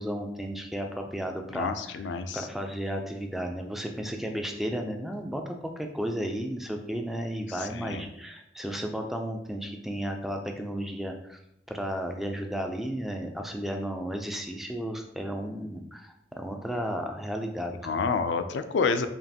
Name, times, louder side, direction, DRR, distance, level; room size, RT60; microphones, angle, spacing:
voice 1, 0.0-2.1 2.3-11.4 11.7-18.0, equal, ahead, 3 dB, 0.3 m, -33 dB
voice 2, 1.5-2.5 7.6-8.0 17.8-19.1, left 5 dB, 80° left, 9 dB, 0.4 m, -29 dB
5.2 x 2.5 x 2.8 m, 0.78 s
head